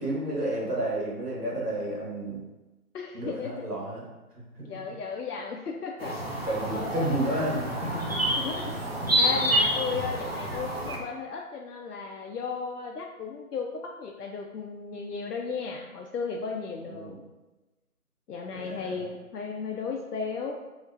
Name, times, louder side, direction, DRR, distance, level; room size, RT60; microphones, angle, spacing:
voice 1, 0.0-2.4 3.1-4.0 4.3-4.4 6.5-8.3 9.3-9.4 16.9-17.2 18.5-19.0, right 1 dB, 85° right, -4 dB, 1.4 m, -31 dB
voice 2, 2.9-3.7 4.6-6.4 6.7-7.5 8.4-8.7 9.2-17.1 18.3-20.6, left 5 dB, 85° left, 0 dB, 0.5 m, -35 dB
sound 1, 6.0-11.0, right 1 dB, 45° right, 0.5 m, -28 dB
3.1 x 2.8 x 2.5 m, 1.1 s
figure-of-eight pair, 170°, 45 cm